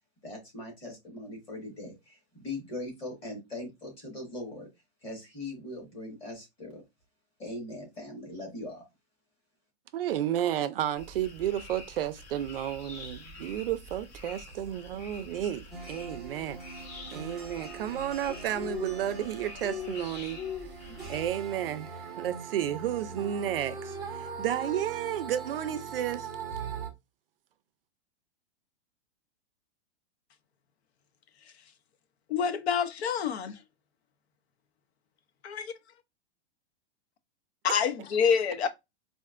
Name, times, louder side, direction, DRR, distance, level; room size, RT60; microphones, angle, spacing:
voice 1, 0.2-4.7 5.0-6.8 7.4-8.8, left 2 dB, 15° left, 1.5 m, -40 dB
voice 2, 9.9-16.8 17.1-20.4 21.1-26.3, right 11 dB, 55° right, 0.4 m, -32 dB
sound 1, 11.0-21.3, left 5 dB, 40° left, 1.2 m, -44 dB
sound 2, 15.7-26.9, right 5 dB, ahead, 0.6 m, -41 dB
voice 3, 32.3-33.6 35.4-35.7 37.6-38.7, left 7 dB, 70° left, 0.7 m, -27 dB
4.4 x 2.5 x 2.4 m
supercardioid pair, 175°, 34 cm